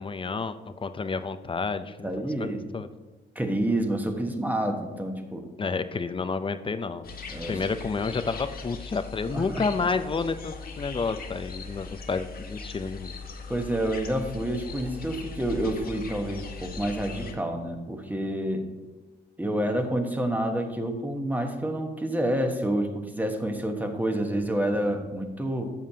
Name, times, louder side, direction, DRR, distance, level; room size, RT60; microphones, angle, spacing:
voice 1, 0.0-2.1 2.4-2.9 5.6-7.0 7.5-13.1, left 4 dB, 25° left, 11 dB, 0.5 m, -30 dB
voice 2, 2.0-2.7 3.3-5.4 7.3-7.6 9.3-9.6 13.5-18.7 19.4-25.7, right 1 dB, 10° right, 5 dB, 1.2 m, -28 dB
sound 1, 7.0-17.3, left 4 dB, 50° left, 1.3 m, -40 dB
12.5 x 7.3 x 2.8 m, 1.2 s
cardioid pair, 90°, 20 cm